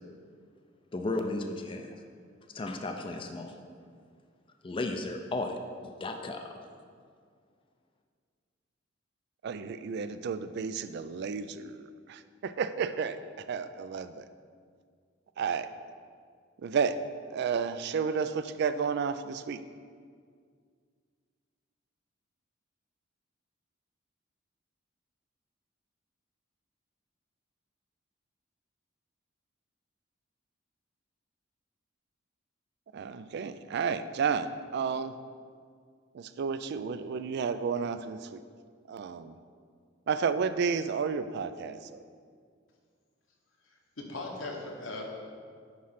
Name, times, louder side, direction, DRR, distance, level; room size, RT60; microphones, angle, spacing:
voice 1, 0.9-1.9 2.5-3.6 4.6-6.6, left 2 dB, 25° left, 4 dB, 0.4 m, -34 dB
voice 2, 9.4-13.2 13.5-14.3 15.4-15.7 16.6-17.0 17.3-19.6 32.9-35.1 36.1-38.4 38.9-39.4 40.1-42.0, right 6 dB, 55° right, 12 dB, 0.3 m, -32 dB
voice 3, 44.0-45.0, left 2 dB, 85° left, 0 dB, 1.2 m, -38 dB
9.4 x 3.2 x 5.7 m, 2.1 s
head